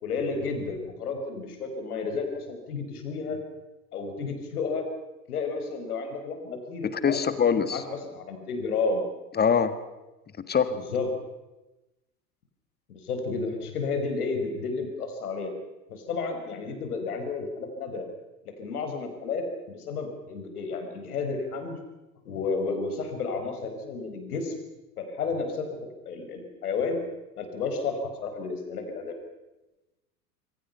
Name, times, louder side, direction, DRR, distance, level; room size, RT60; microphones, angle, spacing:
voice 1, 0.0-3.4 3.9-4.9 5.3-7.2 7.7-9.0 10.9-11.1 12.9-15.5 15.9-18.1 18.5-21.8 22.3-24.6 25.0-25.7 26.1-27.0 27.4-29.2, left 4 dB, 65° left, 6 dB, 5.2 m, -31 dB
voice 2, 6.9-7.8 9.3-9.8 10.5-10.8, left 6 dB, 20° left, 12 dB, 1.7 m, -23 dB
26.5 x 24.0 x 5.8 m, 1.0 s
figure-of-eight pair, 80°, 47 cm